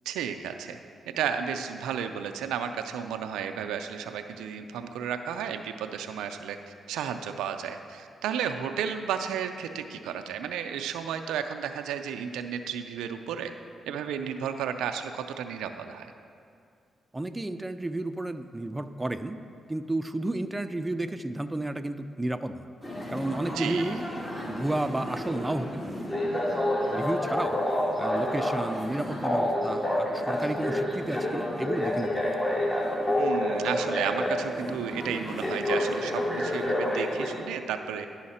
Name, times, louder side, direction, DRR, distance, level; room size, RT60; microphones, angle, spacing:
voice 1, 0.1-0.8 1.1-13.5 13.9-16.1 23.5-23.9 33.2-38.1, right 8 dB, 90° right, 7 dB, 0.3 m, -33 dB
voice 2, 17.1-19.4 19.7-22.6 23.1-24.0 24.5-25.9 26.9-27.6 28.0-32.3, right 2 dB, 20° right, 9 dB, 0.4 m, -32 dB
sound 1, 22.8-37.3, left 1 dB, 30° left, 1.9 m, -29 dB
10.5 x 5.7 x 4.2 m, 2.4 s
supercardioid pair, 50°, 0 cm